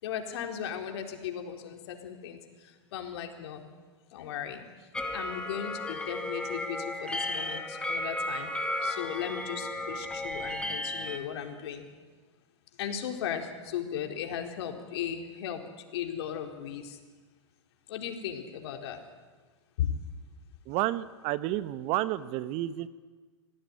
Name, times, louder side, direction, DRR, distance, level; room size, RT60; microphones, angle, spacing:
voice 1, 0.0-2.4 2.9-3.6 4.1-4.6 5.1-8.5 8.8-11.8 12.8-15.6 15.9-17.0 17.9-19.0 19.8-19.9, left 9 dB, 60° left, 4 dB, 4.3 m, -36 dB
sound 1, 4.9-11.2, left 1 dB, 5° left, 2.8 m, -34 dB
voice 2, 20.7-22.9, right 15 dB, 40° right, 15 dB, 1.2 m, -30 dB
26.0 x 18.0 x 9.8 m, 1.4 s
hypercardioid pair, 110°, 16 cm